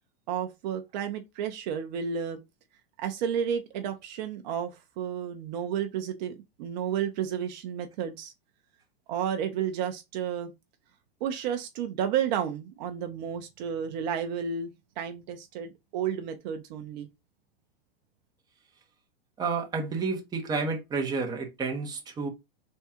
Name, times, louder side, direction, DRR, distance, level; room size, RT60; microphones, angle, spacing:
voice 1, 0.3-2.4 3.0-8.3 9.1-10.5 11.2-17.1, right 8 dB, 45° right, 0.6 m, -32 dB
voice 2, 19.4-22.3, right 4 dB, 15° right, 0.8 m, -30 dB
3.6 x 2.3 x 4.2 m
hypercardioid pair, 140°, 30 cm